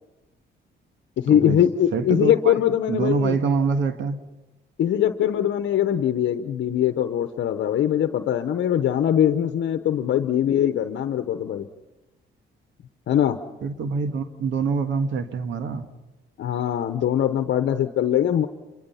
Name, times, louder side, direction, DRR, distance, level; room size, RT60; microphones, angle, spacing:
voice 1, 1.2-3.4 4.8-11.7 13.1-13.4 16.4-18.5, left 10 dB, 70° left, 9 dB, 1.0 m, -22 dB
voice 2, 1.9-2.6 2.9-4.2 13.6-15.9, right 5 dB, 75° right, 9 dB, 1.6 m, -25 dB
27.0 x 23.0 x 5.7 m, 1.1 s
cardioid pair, 90°, 20 cm